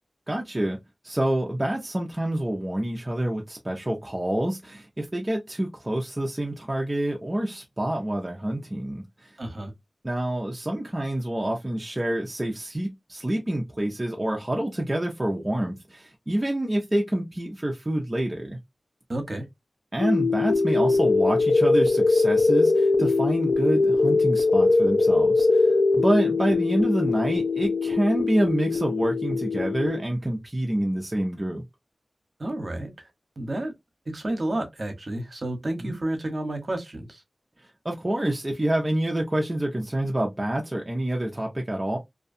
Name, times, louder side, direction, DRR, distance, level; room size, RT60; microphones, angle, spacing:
voice 1, 0.3-9.4 10.0-18.6 19.9-31.6 35.8-36.0 37.8-42.0, right 1 dB, 25° right, 0.6 m, -27 dB
voice 2, 9.4-9.7 19.1-19.4 32.4-33.1 33.4-33.7 34.1-37.2, right 1 dB, 55° right, 1.0 m, -31 dB
sound 1, 20.0-30.0, left 3 dB, 80° left, 0.6 m, -22 dB
2.6 x 2.2 x 2.5 m
cardioid pair, 45°, 0 cm